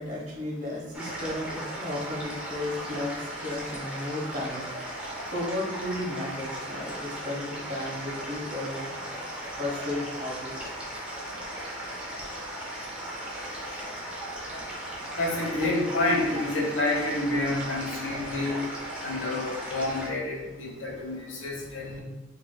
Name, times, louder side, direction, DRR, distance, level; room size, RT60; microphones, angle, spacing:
voice 1, 0.0-4.7 4.9-8.8 9.6-10.7, left 1 dB, 40° right, -4 dB, 1.1 m, -34 dB
sound 1, 0.9-20.1, right 1 dB, 5° right, 0.7 m, -37 dB
voice 2, 15.2-18.6 19.0-22.0, left 2 dB, 85° left, -2 dB, 1.0 m, -28 dB
4.9 x 2.6 x 2.2 m, 1.0 s
head